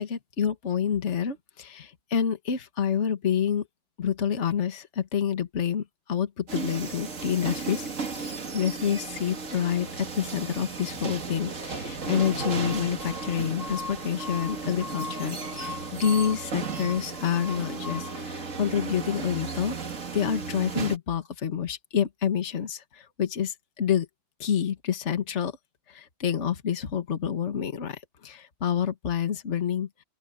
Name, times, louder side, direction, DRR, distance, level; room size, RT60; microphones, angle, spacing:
voice 1, 0.0-3.7 4.0-19.8 20.1-24.1 24.4-25.5 25.9-29.9, left 8 dB, 40° left, 1.7 m, -28 dB
sound 1, 6.5-21.0, right 3 dB, 40° right, 2.2 m, -34 dB
open air
omnidirectional pair, 2.2 m